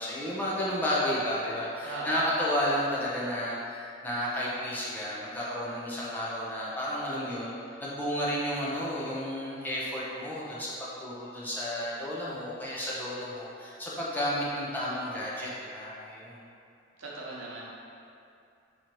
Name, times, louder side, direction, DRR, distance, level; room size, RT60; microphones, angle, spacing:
voice 1, 0.0-7.5 7.8-10.7 11.0-16.4, equal, 10° left, -7 dB, 0.6 m, -32 dB
voice 2, 1.8-2.2 17.0-17.6, right 2 dB, 85° right, -5 dB, 0.9 m, -37 dB
3.9 x 3.0 x 4.4 m, 2.5 s
head